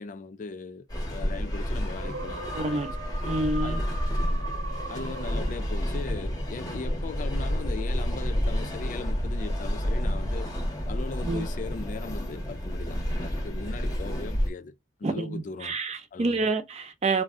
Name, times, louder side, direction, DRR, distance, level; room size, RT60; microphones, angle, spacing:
voice 1, 0.0-2.9 3.6-3.9 4.3-4.5 4.9-10.5 10.9-14.7 15.0-15.8 16.1-16.4, left 4 dB, 45° left, 0.3 m, -39 dB
sound 1, 0.9-14.5, equal, 20° left, 0.7 m, -30 dB
sound 2, 1.9-6.0, right 3 dB, 85° right, 0.9 m, -39 dB
voice 2, 2.5-2.9 3.2-3.8 11.2-11.5 15.0-17.2, right 3 dB, 35° right, 0.4 m, -28 dB
2.6 x 2.1 x 3.4 m
head